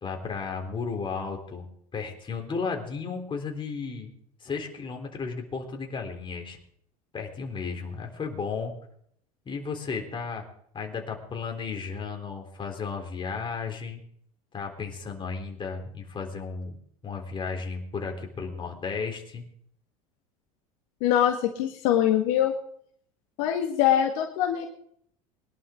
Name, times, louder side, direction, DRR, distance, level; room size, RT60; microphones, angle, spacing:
voice 1, 0.0-1.6 1.9-4.1 4.4-6.6 7.1-8.7 9.5-10.4 10.7-14.0 14.5-16.8 17.0-19.4, left 5 dB, 25° left, 3 dB, 3.8 m, -34 dB
voice 2, 21.0-22.6 23.4-24.7, left 10 dB, 65° left, 3 dB, 1.8 m, -23 dB
22.5 x 11.5 x 3.8 m, 0.65 s
hypercardioid pair, 80°, 18 cm